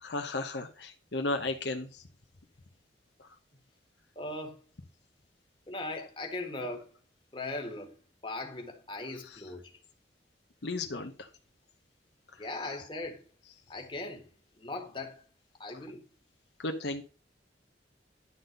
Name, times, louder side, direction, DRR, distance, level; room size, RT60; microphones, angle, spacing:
voice 1, 0.0-2.0 10.6-11.3 16.6-17.0, left 2 dB, 70° left, 0.9 m, -34 dB
voice 2, 4.1-4.6 5.7-6.9 7.3-7.9 8.2-9.7 12.4-13.2 13.7-14.3 14.6-15.2 15.6-16.0, left 2 dB, 30° left, 1.6 m, -39 dB
11.0 x 4.0 x 6.6 m
head